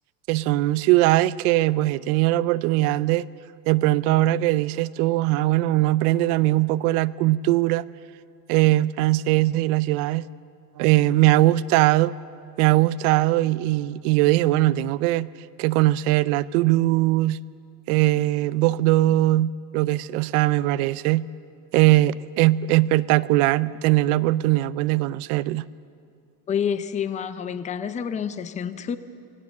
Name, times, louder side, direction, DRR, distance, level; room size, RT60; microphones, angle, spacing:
voice 1, 0.3-3.3 3.7-7.8 8.5-10.3 10.8-12.2 12.6-15.3 15.6-17.4 17.9-21.3 21.7-25.6, right 16 dB, 65° right, 18 dB, 0.7 m, -20 dB
voice 2, 26.5-29.0, left 7 dB, 15° left, 12 dB, 0.6 m, -28 dB
24.5 x 17.0 x 7.2 m, 2.4 s
supercardioid pair, 145°, 48 cm